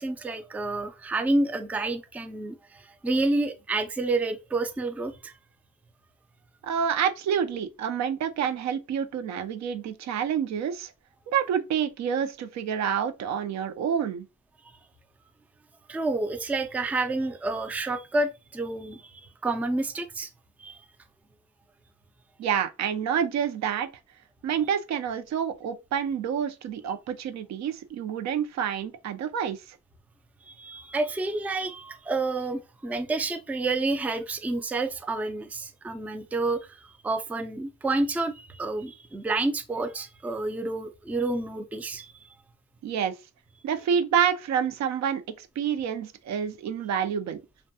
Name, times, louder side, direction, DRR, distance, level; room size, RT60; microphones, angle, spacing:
voice 1, 0.0-5.3 15.9-20.3 20.6-20.8 30.5-42.2, right 2 dB, 5° right, 0.3 m, -29 dB
voice 2, 6.6-10.9 11.3-14.3 22.4-23.9 24.4-29.6 42.8-43.1 43.6-47.4, right 8 dB, 65° right, 0.5 m, -28 dB
2.6 x 2.2 x 2.6 m
cardioid pair, 90°, 30 cm